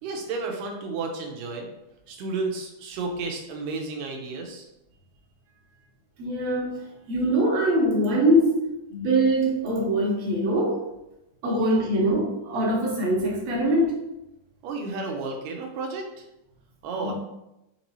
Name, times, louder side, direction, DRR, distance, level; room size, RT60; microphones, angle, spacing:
voice 1, 0.0-1.7 2.1-4.7 11.4-11.9 14.6-16.3 16.8-17.1, right 3 dB, 90° right, 1 dB, 2.3 m, -32 dB
voice 2, 6.2-6.8 7.1-10.8 11.4-14.0 17.0-17.1, right 1 dB, 65° right, -3 dB, 2.0 m, -23 dB
6.0 x 3.0 x 2.8 m, 0.89 s
omnidirectional pair, 3.8 m